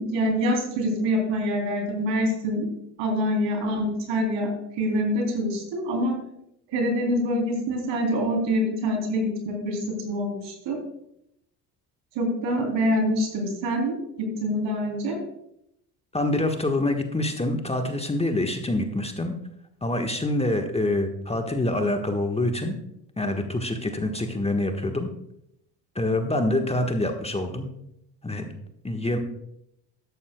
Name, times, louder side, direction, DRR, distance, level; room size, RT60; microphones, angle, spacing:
voice 1, 0.0-2.7 3.0-6.2 6.7-10.8 12.1-15.2, equal, 65° right, 3 dB, 3.4 m, -25 dB
voice 2, 16.1-19.3 19.8-22.7 23.2-25.1 25.9-27.7 28.2-28.5 28.8-29.2, left 1 dB, 15° left, 4 dB, 1.3 m, -26 dB
13.0 x 11.5 x 2.3 m, 0.78 s
hypercardioid pair, 60°, 47 cm